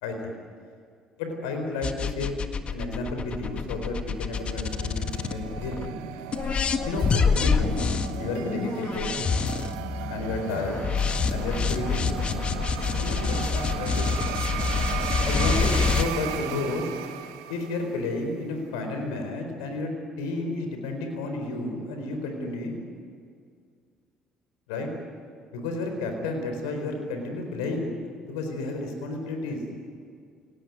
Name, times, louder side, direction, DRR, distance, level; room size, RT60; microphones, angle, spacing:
voice 1, 0.0-0.4 1.2-2.3 2.7-6.0 6.9-7.8 8.2-9.1 10.1-10.8 11.3-12.1 13.0-14.2 15.2-16.9 17.5-19.9 20.2-22.8 24.7-24.9 25.5-27.9 28.2-29.6, left 2 dB, 80° left, 4 dB, 4.3 m, -31 dB
sound 1, 1.8-5.9 6.3-16.0, left 5 dB, 45° left, 1.7 m, -27 dB
sound 2, 3.5-18.1, right 11 dB, 80° right, 1.4 m, -36 dB
27.5 x 18.5 x 9.5 m, 2.2 s
hypercardioid pair, 60°, 3 cm